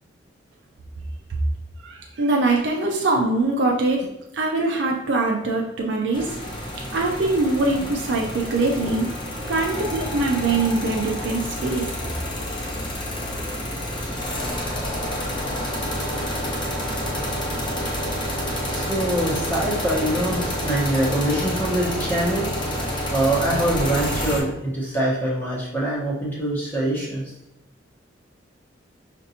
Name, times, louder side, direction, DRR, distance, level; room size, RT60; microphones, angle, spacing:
voice 1, 1.8-4.1 4.3-6.4 6.9-9.1 9.5-11.9, right 2 dB, 70° right, -1 dB, 0.5 m, -23 dB
sound 1, 6.1-24.4, equal, 25° left, 0.7 m, -28 dB
voice 2, 18.4-22.5 22.8-27.2, right 1 dB, 10° left, -6 dB, 1.0 m, -24 dB
5.3 x 2.5 x 2.8 m, 0.88 s
head